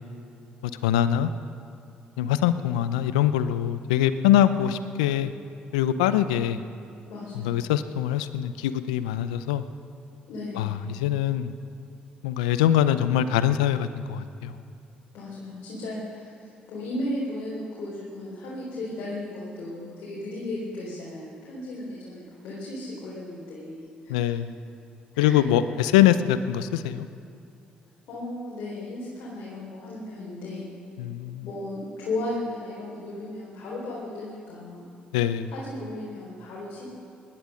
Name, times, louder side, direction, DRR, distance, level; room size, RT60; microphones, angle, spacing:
voice 1, 0.8-1.3 2.2-5.3 5.7-6.6 7.3-9.6 10.5-11.5 12.2-14.5 24.1-24.5 25.2-27.1 31.0-31.5 35.1-35.5, left 11 dB, 90° left, 13 dB, 0.5 m, -23 dB
voice 2, 7.1-7.5 10.3-10.8 15.1-23.8 24.2-24.3 25.1-25.4 28.1-30.7 31.4-34.9 35.5-36.9, left 1 dB, 70° left, -6 dB, 4.0 m, -35 dB
19.0 x 12.0 x 6.3 m, 2.5 s
hypercardioid pair, 55°, 4 cm